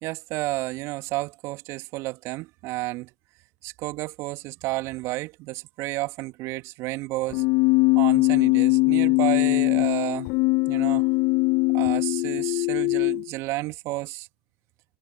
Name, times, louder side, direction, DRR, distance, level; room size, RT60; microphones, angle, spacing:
voice 1, 0.0-3.1 3.6-7.4 8.0-10.3 10.7-11.1 11.7-14.3, right 21 dB, 45° right, 2.3 m, -31 dB
Keyboard (musical), 7.3-13.3, left 26 dB, 45° left, 1.5 m, -21 dB
figure-of-eight pair, 90°, 7 cm